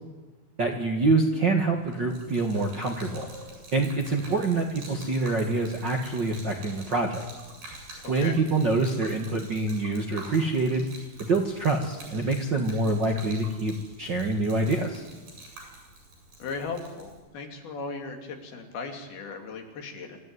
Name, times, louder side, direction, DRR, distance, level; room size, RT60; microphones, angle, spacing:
voice 1, 0.6-3.3 3.7-7.2 8.1-10.9 11.2-15.0, right 3 dB, 50° right, 2 dB, 1.4 m, -26 dB
Gurgling / Liquid, 1.7-17.2, right 2 dB, 80° right, 9.3 m, -47 dB
voice 2, 8.0-8.4 16.4-20.2, left 4 dB, 80° left, 3 dB, 4.4 m, -37 dB
26.5 x 14.0 x 9.5 m, 1.2 s
omnidirectional pair, 4.3 m